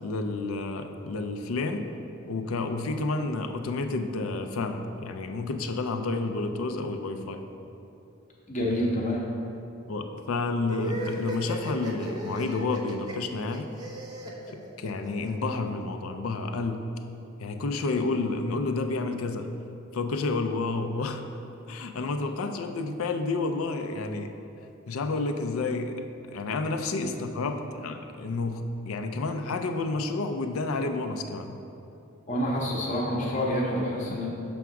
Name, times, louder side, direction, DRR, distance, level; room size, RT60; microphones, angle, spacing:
voice 1, 0.0-1.9 2.3-7.4 9.9-13.7 14.5-16.9 17.4-19.5 19.9-21.3 21.7-24.3 24.9-26.0 26.3-31.6, left 3 dB, 80° left, 7 dB, 0.5 m, -30 dB
voice 2, 8.5-9.2 27.0-27.1 32.3-34.3, equal, 35° left, -4 dB, 0.7 m, -27 dB
sound 1, 10.7-15.3, right 1 dB, 20° right, 0.7 m, -36 dB
6.1 x 3.6 x 5.8 m, 2.8 s
head